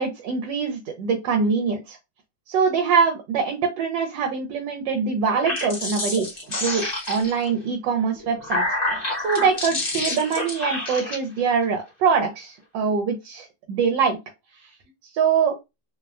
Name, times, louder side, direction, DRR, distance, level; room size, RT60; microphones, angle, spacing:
voice 1, 0.0-2.0 2.5-6.3 6.6-8.6 9.2-14.2 15.1-15.5, right 5 dB, 80° right, 4 dB, 1.2 m, -23 dB
sound 1, 5.2-7.5 8.2-11.2, left 1 dB, 30° left, 0.8 m, -28 dB
3.1 x 2.1 x 2.3 m, 0.23 s
omnidirectional pair, 2.0 m